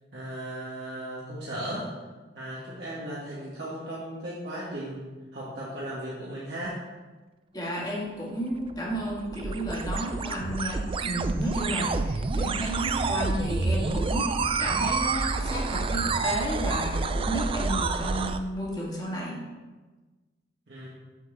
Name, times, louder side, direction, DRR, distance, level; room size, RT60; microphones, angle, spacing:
voice 1, 0.1-1.8 2.3-6.7 20.7-20.9, right 1 dB, 60° right, -8 dB, 1.8 m, -36 dB
voice 2, 7.5-14.3 14.6-19.4, equal, 20° left, -4 dB, 1.9 m, -32 dB
sound 1, 8.5-18.4, right 4 dB, 30° right, 0.3 m, -28 dB
8.0 x 4.5 x 6.5 m, 1.3 s
head